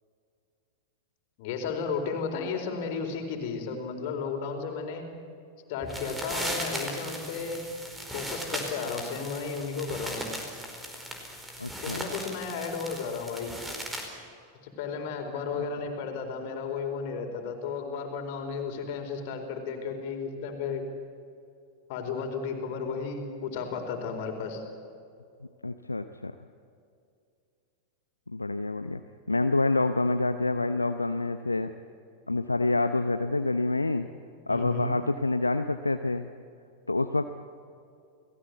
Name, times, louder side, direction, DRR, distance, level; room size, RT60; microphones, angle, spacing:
voice 1, 1.4-5.1 5.7-7.7 8.1-10.3 11.8-13.5 14.6-20.8 21.9-24.6 34.5-34.9, left 5 dB, 50° left, 4 dB, 4.6 m, -33 dB
sound 1, 5.8-14.1, equal, 10° right, 4.7 m, -37 dB
voice 2, 11.6-12.1 15.6-15.7 25.6-26.3 28.3-29.0 29.3-31.7 32.3-34.1 34.5-36.3 36.9-37.3, left 2 dB, 80° left, 9 dB, 0.8 m, -27 dB
30.0 x 19.0 x 8.2 m, 2.4 s
figure-of-eight pair, 90°, 0 cm